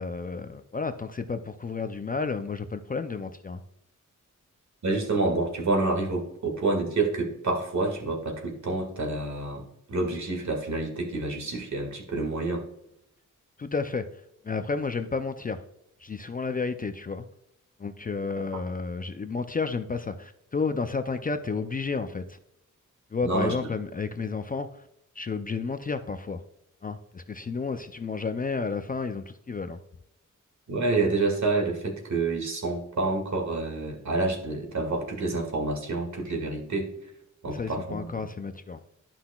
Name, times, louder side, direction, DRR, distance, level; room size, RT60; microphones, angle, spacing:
voice 1, 0.0-3.6 13.6-14.0 14.4-15.6 16.0-17.2 17.8-22.4 23.1-24.8 25.2-26.4 26.8-29.8 37.5-38.8, left 4 dB, 30° left, 8 dB, 0.4 m, -31 dB
voice 2, 4.8-9.6 9.9-12.6 23.2-23.7 30.7-36.9 37.4-38.1, right 3 dB, 60° right, 1 dB, 1.9 m, -28 dB
11.5 x 5.7 x 2.3 m, 0.81 s
wide cardioid pair, 130°, 32 cm